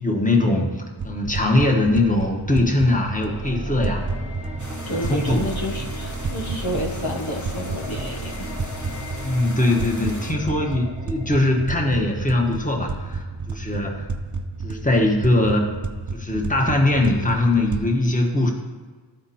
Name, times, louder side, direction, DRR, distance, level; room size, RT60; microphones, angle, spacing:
voice 1, 0.0-4.0 4.8-5.4 9.2-14.0 14.6-15.7 16.1-18.5, left 2 dB, 15° left, 0 dB, 1.4 m, -21 dB
sound 1, 1.0-17.8, right 3 dB, 40° right, 0.6 m, -32 dB
sound 2, 2.9-12.0, right 1 dB, 15° right, 1.0 m, -35 dB
sound 3, 4.6-10.3, left 2 dB, 40° left, 1.1 m, -40 dB
voice 2, 4.9-8.5, equal, 75° left, 1 dB, 1.3 m, -30 dB
13.0 x 5.2 x 4.3 m, 1.4 s
wide cardioid pair, 50°, 47 cm